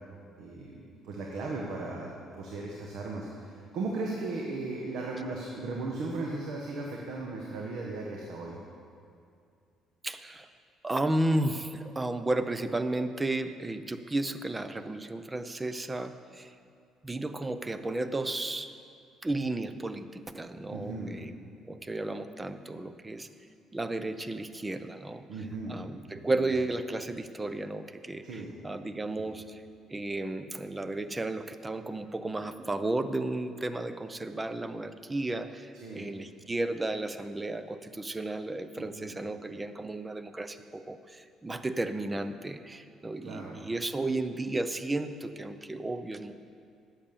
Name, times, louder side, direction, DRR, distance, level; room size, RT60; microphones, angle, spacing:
voice 1, 0.4-8.6 20.7-21.1 25.3-25.8 26.3-26.4 28.2-28.5 35.7-36.1 38.8-39.2 43.2-43.5, right 3 dB, 75° right, -1 dB, 1.4 m, -37 dB
voice 2, 10.0-10.5 10.8-16.6 17.0-18.7 19.2-21.3 21.7-23.3 23.7-25.3 25.7-29.6 29.9-46.3, right 2 dB, 15° right, 11 dB, 0.6 m, -33 dB
11.0 x 7.3 x 6.9 m, 2.4 s
cardioid pair, 100°, 0 cm